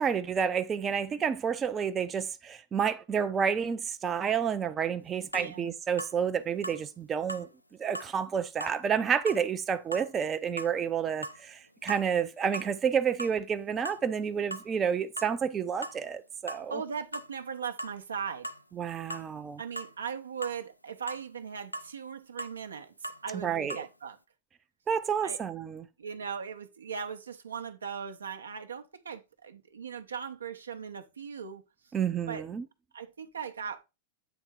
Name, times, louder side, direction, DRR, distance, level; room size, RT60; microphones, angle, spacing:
voice 1, 0.0-7.5 7.8-16.8 18.8-19.6 23.3-23.8 24.9-25.8 31.9-32.6, right 7 dB, 25° right, 0.4 m, -30 dB
sound 1, 5.3-5.5 6.0-6.2 6.6-6.8 7.3-7.5 7.9-8.1 8.6-8.8 9.3-9.4 9.9-10.1 10.6-10.8 11.2-11.4 11.8-12.2 12.5-12.7 13.2-13.4 13.8-14.0 14.5-14.7 15.2-15.3 15.8-16.0 16.5-16.7 17.1-17.3 17.8-18.0 18.4-18.6 19.1-19.3 19.8-19.9 20.4-20.6 21.1-21.3 21.7-21.9 22.4-22.6 23.0-23.2 23.7-23.9, right 1 dB, 90° left, 0.4 m, -39 dB
voice 2, 5.3-5.7 16.7-18.5 19.6-24.2 25.2-25.4 26.0-31.6 32.3-32.4 32.9-33.8, right 6 dB, 70° right, 0.6 m, -39 dB
8.0 x 3.6 x 4.4 m
figure-of-eight pair, 90°, 0 cm